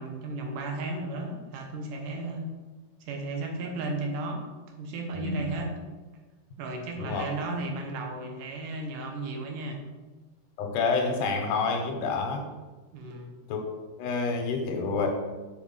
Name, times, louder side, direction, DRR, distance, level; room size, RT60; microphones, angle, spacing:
voice 1, 0.0-2.5 3.1-4.4 4.8-5.7 6.6-9.8 12.9-13.4, right 2 dB, 85° right, 2 dB, 2.6 m, -34 dB
voice 2, 10.6-12.5 13.5-13.6 14.0-15.1, left 4 dB, 85° left, 3 dB, 2.4 m, -28 dB
5.8 x 4.9 x 5.4 m, 1.2 s
omnidirectional pair, 3.6 m